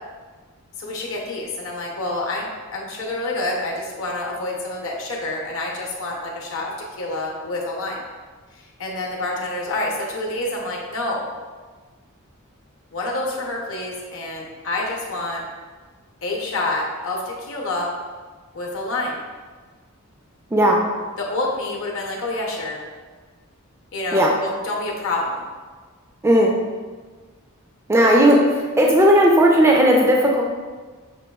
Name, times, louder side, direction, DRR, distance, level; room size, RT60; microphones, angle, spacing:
voice 1, 0.8-8.1 8.5-11.3 12.9-15.4 16.2-17.9 18.5-19.2 21.2-22.8 23.9-25.4, left 2 dB, 65° left, -1 dB, 0.7 m, -28 dB
voice 2, 27.9-30.4, equal, 15° right, -1 dB, 0.3 m, -15 dB
5.9 x 2.3 x 2.2 m, 1.4 s
head